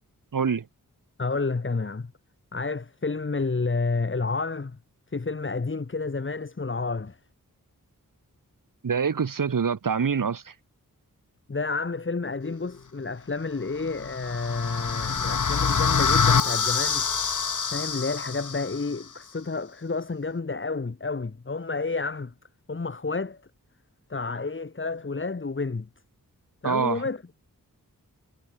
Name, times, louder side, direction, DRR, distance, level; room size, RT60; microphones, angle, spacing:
voice 1, 0.3-0.6 8.8-10.5 26.6-27.0, right 6 dB, 65° right, 1.8 m, -25 dB
voice 2, 1.2-2.1 2.5-4.8 5.1-7.2 11.5-17.1 17.7-22.3 22.7-23.4 24.1-25.9 26.6-27.3, left 4 dB, 35° left, 1.8 m, -30 dB
sound 1, 13.8-18.9, left 5 dB, 55° left, 1.8 m, -25 dB
wide cardioid pair, 95°, 35 cm